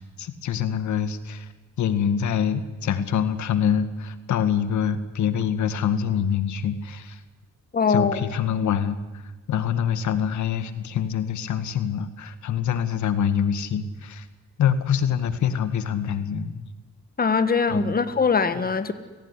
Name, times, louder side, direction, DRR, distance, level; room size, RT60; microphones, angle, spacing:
voice 1, 0.0-1.5 1.8-7.2 7.9-14.3 14.6-16.6 17.7-17.9, left 8 dB, 70° left, 1.9 m, -25 dB
voice 2, 7.7-8.2 17.2-18.9, left 5 dB, 30° left, 1.7 m, -21 dB
29.5 x 18.0 x 9.9 m
cardioid pair, 90°, 30 cm